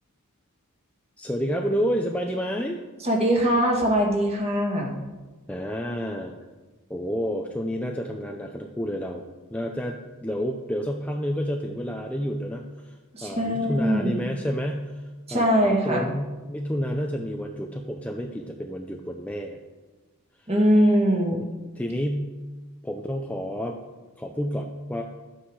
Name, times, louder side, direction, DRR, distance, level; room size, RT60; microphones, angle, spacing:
voice 1, 1.2-2.8 5.5-6.4 6.9-13.0 13.2-19.6 21.3-22.3 22.8-23.8 24.2-25.0, equal, 5° left, 2 dB, 0.6 m, -30 dB
voice 2, 3.0-4.9 13.1-14.2 15.3-16.1 20.5-21.4, equal, 30° right, 0 dB, 2.0 m, -22 dB
12.0 x 8.9 x 4.8 m, 1.2 s
head